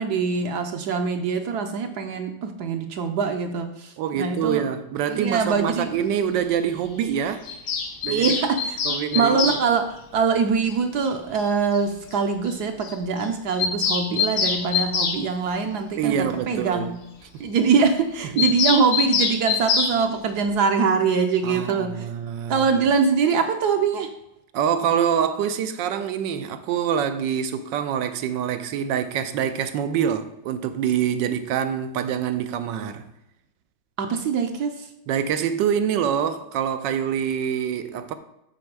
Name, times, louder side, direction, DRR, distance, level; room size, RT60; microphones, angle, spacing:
voice 1, 0.0-4.6 5.1-5.9 6.2-6.4 8.1-8.8 9.1-16.9 17.4-22.1 22.5-24.1 34.0-34.9, right 5 dB, 70° right, 1.1 m, -23 dB
voice 2, 4.0-7.4 8.0-8.3 8.8-9.6 16.0-16.9 18.3-18.5 21.4-22.8 24.5-33.1 35.1-38.1, right 8 dB, 85° right, 1.3 m, -25 dB
Bird vocalization bird call bird song, 7.5-9.6 11.1-11.2 11.4-11.5 11.7-11.8 12.1-12.2 12.4-12.5 12.8-12.9 13.2-15.2 18.4-19.9, left 5 dB, 80° left, 1.7 m, -24 dB
8.5 x 4.4 x 4.7 m
omnidirectional pair, 1.9 m